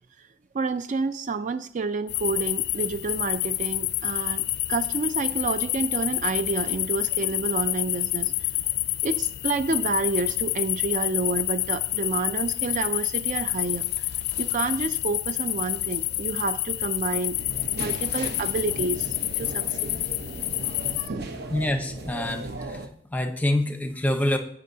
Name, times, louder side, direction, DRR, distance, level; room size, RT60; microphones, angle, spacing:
voice 1, 0.5-4.4 4.7-8.5 9.0-14.1 14.4-17.4 17.7-20.0 20.6-21.2, right 4 dB, 40° right, 11 dB, 0.4 m, -29 dB
sound 1, 2.1-21.1, left 16 dB, 60° left, 0.4 m, -28 dB
sound 2, 17.3-22.9, right 2 dB, 60° right, 1.0 m, -37 dB
voice 2, 21.5-22.8 23.1-24.4, left 1 dB, 10° left, 6 dB, 0.9 m, -26 dB
17.0 x 6.1 x 2.8 m, 0.65 s
head